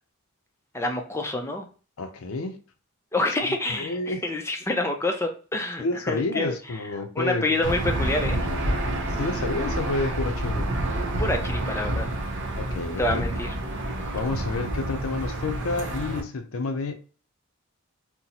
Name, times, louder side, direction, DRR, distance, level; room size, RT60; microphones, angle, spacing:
voice 1, 0.7-1.7 3.1-6.5 7.2-8.4 11.2-12.1 13.0-13.5, left 2 dB, 10° left, 0.4 m, -27 dB
voice 2, 2.0-2.6 3.4-4.2 5.8-7.6 9.1-10.8 12.6-13.3 14.1-16.9, left 3 dB, 70° left, 0.5 m, -30 dB
Aircraft / Engine, 7.6-16.2, right 1 dB, 55° right, 0.6 m, -28 dB
3.9 x 2.0 x 2.8 m
head